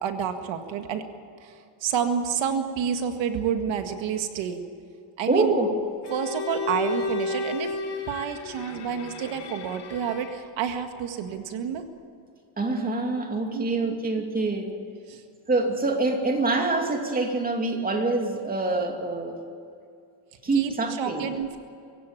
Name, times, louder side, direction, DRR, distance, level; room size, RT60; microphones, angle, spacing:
voice 1, 0.0-1.0 1.4-4.6 5.2-5.5 6.1-7.7 8.1-11.8 13.5-13.6 15.1-15.2 20.5-20.7 21.0-21.6, right 8 dB, 85° right, 6 dB, 2.0 m, -29 dB
voice 2, 5.3-5.7 12.6-14.8 15.5-19.4 20.4-21.3, right 3 dB, 20° right, 3 dB, 2.7 m, -25 dB
Bowed string instrument, 6.0-10.6, left 3 dB, 65° left, 2.7 m, -33 dB
24.5 x 16.0 x 8.8 m, 2.5 s
cardioid pair, 170°, 45 cm